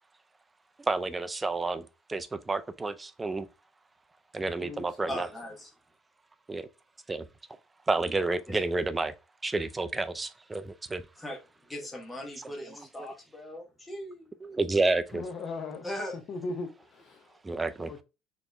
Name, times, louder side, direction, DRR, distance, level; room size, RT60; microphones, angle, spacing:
voice 1, 0.8-3.5 4.3-5.3 6.5-6.7 7.1-7.3 7.9-9.1 9.4-11.0 12.4-12.9 14.4-15.2 17.4-17.9, right 3 dB, 10° right, 0.3 m, -30 dB
voice 2, 4.4-5.0 15.1-15.9 16.1-17.4 17.9-18.0, left 3 dB, 35° left, 0.6 m, -38 dB
voice 3, 5.1-5.7 11.2-11.4 11.7-14.3 15.8-16.2, left 1 dB, 10° left, 1.0 m, -39 dB
4.3 x 2.9 x 3.2 m
cardioid pair, 155°, 0 cm